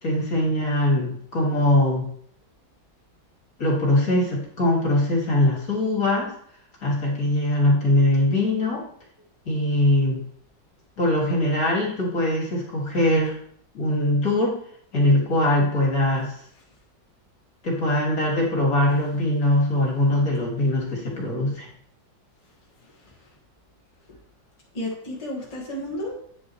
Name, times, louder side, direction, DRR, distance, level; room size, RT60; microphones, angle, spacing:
voice 1, 0.0-2.1 3.6-6.3 6.8-8.8 9.5-10.2 11.0-13.3 13.7-14.6 14.9-16.3 17.6-21.7, left 1 dB, 50° left, -3 dB, 2.6 m, -22 dB
voice 2, 22.8-23.3 24.1-24.2 24.7-26.1, left 1 dB, 20° left, -4 dB, 1.6 m, -33 dB
9.4 x 6.1 x 3.1 m, 0.63 s
omnidirectional pair, 2.1 m